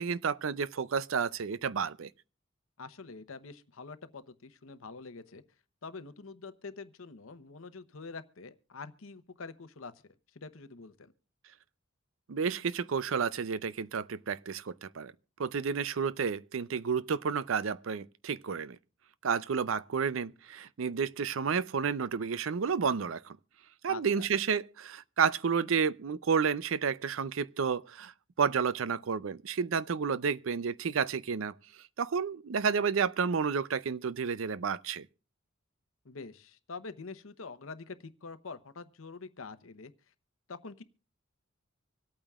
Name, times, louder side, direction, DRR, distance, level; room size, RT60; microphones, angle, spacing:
voice 1, 0.0-2.1 12.3-15.1 15.4-18.8 19.2-23.4 23.8-28.1 28.4-31.5 32.0-35.1, right 6 dB, 75° right, 0.5 m, -31 dB
voice 2, 2.8-5.4 5.8-9.9 10.3-11.1 23.9-24.3 36.0-39.9 40.5-40.8, left 4 dB, 80° left, 0.9 m, -45 dB
25.5 x 8.7 x 2.4 m
head